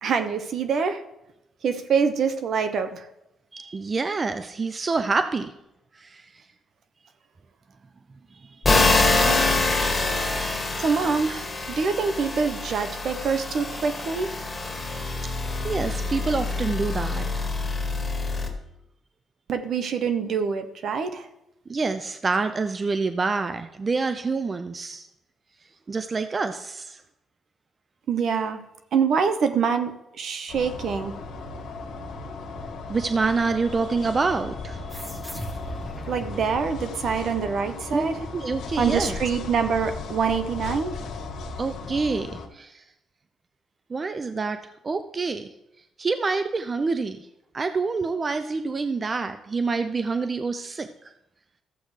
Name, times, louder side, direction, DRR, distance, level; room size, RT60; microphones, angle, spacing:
voice 1, 0.0-1.0 1.6-3.1 8.8-9.6 10.8-14.3 19.5-21.3 28.1-28.6 28.9-31.1 36.1-38.1 38.8-40.9, right 6 dB, 60° right, 9 dB, 0.9 m, -25 dB
voice 2, 3.5-5.5 5.9-6.3 8.3-9.2 15.6-17.5 21.7-25.1 25.9-27.0 32.9-35.0 37.9-38.1 38.3-39.2 41.6-42.8 43.9-45.5 46.0-47.2 47.5-51.1, right 4 dB, 35° right, 9 dB, 0.5 m, -27 dB
sound 1, 8.6-18.5, left 3 dB, 20° left, 2.1 m, -25 dB
sound 2, 30.5-42.5, left 3 dB, 80° left, 1.7 m, -36 dB
sound 3, 34.9-37.9, equal, 5° right, 1.1 m, -40 dB
14.0 x 7.7 x 3.3 m, 0.88 s
cardioid pair, 90°, 0 cm